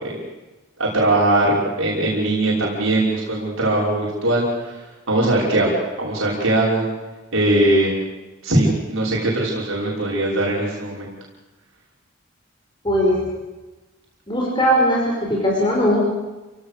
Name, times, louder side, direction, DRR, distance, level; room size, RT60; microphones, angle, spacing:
voice 1, 0.8-4.8 5.1-6.8 7.3-7.9 8.4-11.1, right 1 dB, 85° right, -5 dB, 5.9 m, -20 dB
voice 2, 12.8-13.2 14.3-16.0, equal, 25° left, -4 dB, 5.3 m, -19 dB
29.0 x 17.5 x 6.8 m, 1.1 s
head